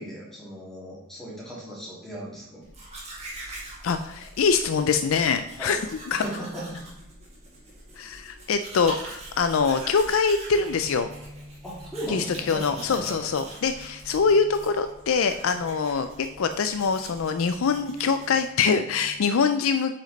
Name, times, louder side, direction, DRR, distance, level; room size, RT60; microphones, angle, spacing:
voice 1, 0.0-2.6 5.6-5.8 6.1-6.8 11.6-13.3, right 1 dB, ahead, -6 dB, 2.4 m, -37 dB
Domestic sounds home sounds, 2.6-18.7, right 1 dB, 30° right, 2.1 m, -44 dB
voice 2, 3.8-5.8 6.1-6.2 8.0-11.1 12.1-19.9, left 5 dB, 80° left, 9 dB, 0.4 m, -24 dB
sound 1, 10.5-19.1, left 1 dB, 30° left, 1.6 m, -48 dB
8.3 x 5.1 x 4.0 m, 0.90 s
head